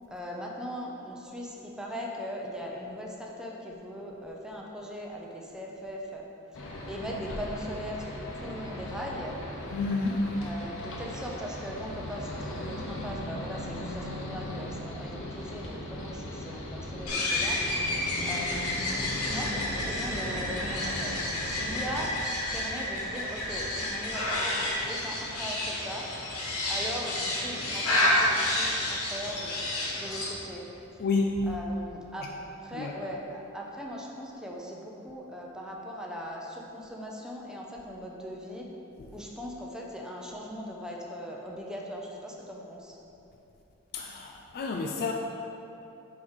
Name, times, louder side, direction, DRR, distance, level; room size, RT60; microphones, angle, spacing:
voice 1, 0.1-6.2 6.6-9.4 10.4-17.6 18.2-18.6 19.0-21.2 21.6-22.2 22.5-26.1 26.7-29.5 29.9-30.6 31.5-32.3 32.6-38.7 39.1-43.0, equal, 5° right, -2 dB, 0.6 m, -39 dB
sound 1, 6.5-22.1, left 1 dB, 60° left, 0.9 m, -38 dB
voice 2, 9.7-10.2 31.0-31.5 32.7-33.0 39.0-39.1 43.9-45.1, left 3 dB, 45° left, 1 dB, 0.3 m, -29 dB
sound 2, 17.1-30.3, left 1 dB, 80° left, 1.4 m, -30 dB
4.8 x 4.6 x 5.6 m, 2.9 s
head